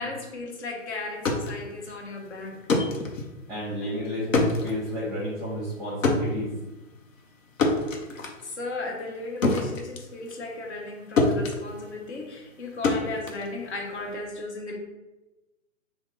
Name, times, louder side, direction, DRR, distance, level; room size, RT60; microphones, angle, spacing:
voice 1, 0.0-2.6 8.4-14.8, left 3 dB, 55° left, 0 dB, 1.2 m, -35 dB
sound 1, 1.0-10.9 11.2-14.1, left 3 dB, 70° left, 0.9 m, -28 dB
voice 2, 3.5-6.5, equal, 5° right, -9 dB, 1.0 m, -31 dB
3.5 x 2.2 x 3.6 m, 1.1 s
hypercardioid pair, 145°, 40 cm